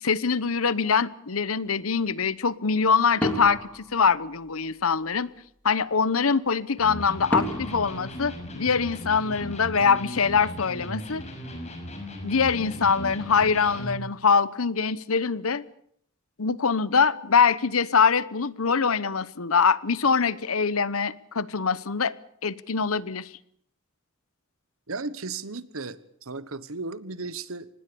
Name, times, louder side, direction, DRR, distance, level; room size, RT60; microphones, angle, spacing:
voice 1, 0.0-5.3 5.6-11.2 12.2-15.7 16.4-22.1 22.4-23.3, left 5 dB, 85° left, 18 dB, 1.0 m, -23 dB
sound 1, 3.2-4.7 7.3-9.1, equal, 5° left, 3.2 m, -33 dB
Electric guitar, 6.8-14.1, equal, 30° left, 5.9 m, -37 dB
voice 2, 24.9-27.7, right 3 dB, 80° right, 16 dB, 1.3 m, -35 dB
25.0 x 20.0 x 7.0 m, 0.66 s
head